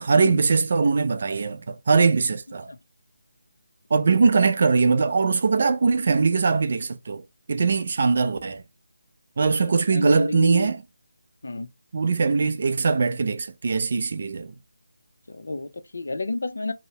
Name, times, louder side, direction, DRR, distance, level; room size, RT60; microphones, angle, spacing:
voice 1, 0.0-2.7 3.9-7.2 7.5-8.6 9.4-10.8 11.9-14.5, right 4 dB, 45° right, 0.3 m, -21 dB
voice 2, 9.6-10.7 11.4-11.7 15.3-16.7, left 2 dB, 70° left, 0.5 m, -30 dB
2.7 x 2.0 x 2.8 m
figure-of-eight pair, 170°, 0 cm